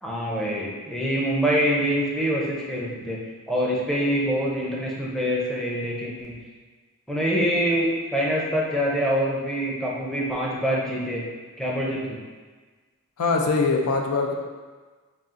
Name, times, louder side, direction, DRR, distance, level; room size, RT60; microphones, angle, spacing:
voice 1, 0.0-3.2 3.5-6.3 7.1-11.2 11.6-12.2, equal, ahead, -5 dB, 0.5 m, -25 dB
voice 2, 13.2-14.3, left 4 dB, 90° left, 2 dB, 0.5 m, -22 dB
4.1 x 2.4 x 3.6 m, 1.4 s
head